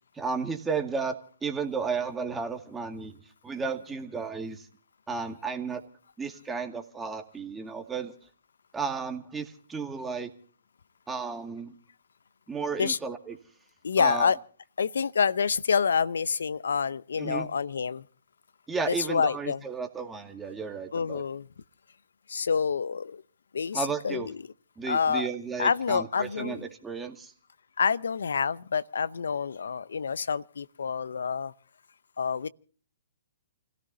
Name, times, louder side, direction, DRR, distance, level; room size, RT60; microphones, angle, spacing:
voice 1, 0.1-1.2 1.4-4.7 5.1-5.8 6.2-8.1 8.7-10.3 11.1-11.7 12.5-13.4 14.0-14.3 17.2-17.5 18.7-21.2 23.7-24.3 24.8-27.3, right 5 dB, 10° right, 2.1 m, -33 dB
voice 2, 13.8-14.4 14.8-18.0 18.9-19.6 20.9-21.5 22.3-23.2 23.5-24.4 24.8-25.3 25.6-26.6 27.8-31.5 32.2-32.5, left 6 dB, 70° left, 0.7 m, -27 dB
30.0 x 17.0 x 2.7 m
hypercardioid pair, 130°, 0 cm